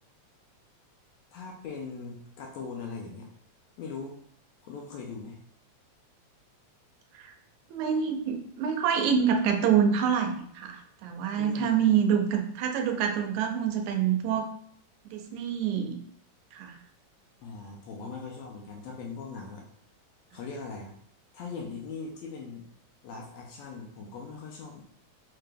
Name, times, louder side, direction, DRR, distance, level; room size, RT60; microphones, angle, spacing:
voice 1, 1.3-3.3 3.8-4.2 4.6-5.4 11.4-11.8 17.4-19.6 20.3-20.9 21.3-22.7 23.0-24.8, left 4 dB, 80° left, 0 dB, 1.6 m, -40 dB
voice 2, 7.7-14.5 15.1-15.9 16.5-16.8, right 7 dB, 85° right, 5 dB, 1.9 m, -26 dB
4.8 x 2.2 x 3.3 m, 0.65 s
omnidirectional pair, 3.3 m